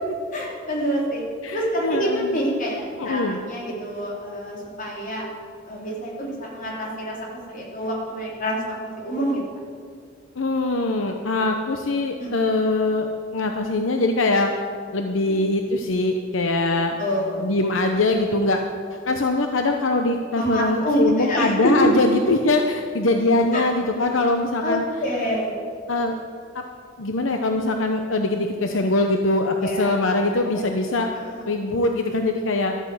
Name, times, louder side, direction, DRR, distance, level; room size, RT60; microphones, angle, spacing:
voice 1, 0.3-1.2 1.5-5.2 5.7-7.2 7.5-9.4 12.2-12.3 17.0-17.4 20.3-21.9 23.5-23.6 24.6-25.6 29.6-29.9 30.5-30.6 31.2-31.4, equal, 45° left, -3 dB, 3.6 m, -26 dB
voice 2, 1.8-2.4 3.0-3.4 10.4-13.1 13.3-14.5 14.9-16.9 17.4-18.6 19.1-24.8 25.9-26.1 26.5-26.6 27.0-31.1 31.5-32.7, left 2 dB, 80° left, 4 dB, 0.8 m, -22 dB
13.0 x 9.0 x 7.8 m, 2.2 s
head